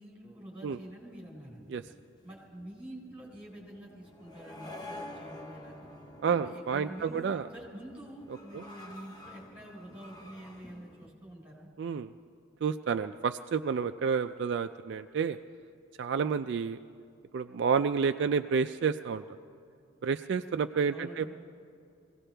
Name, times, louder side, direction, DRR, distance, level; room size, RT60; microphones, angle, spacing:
voice 1, 0.0-1.7 2.2-5.9 6.3-11.7 20.9-21.3, right 1 dB, 5° right, -3 dB, 4.1 m, -47 dB
sound 1, 0.7-11.1, left 1 dB, 20° left, 0.9 m, -49 dB
voice 2, 6.2-7.5 8.5-8.6 11.8-12.1 12.6-15.4 16.0-16.8 17.3-19.2 20.0-21.3, right 6 dB, 55° right, 8 dB, 0.3 m, -30 dB
22.5 x 17.0 x 3.4 m, 2.5 s
head